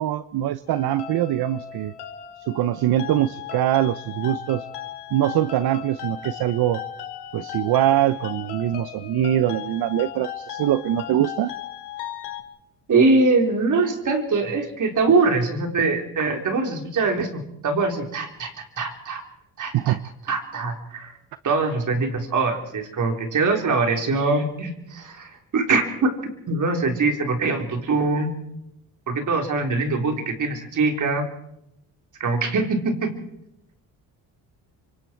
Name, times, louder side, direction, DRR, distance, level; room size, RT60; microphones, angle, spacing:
voice 1, 0.0-1.9 2.4-4.7 5.1-6.8 7.3-11.5 19.7-20.0, right 12 dB, 65° right, 14 dB, 0.8 m, -23 dB
sound 1, 0.7-12.4, left 10 dB, 85° left, 2.8 m, -36 dB
voice 2, 12.9-19.2 19.6-20.0 20.3-21.1 21.4-26.2 26.5-28.3 29.1-31.3 32.2-33.1, right 3 dB, 50° right, 3 dB, 4.1 m, -23 dB
26.0 x 24.5 x 4.6 m, 0.82 s
cardioid pair, 105°, 40 cm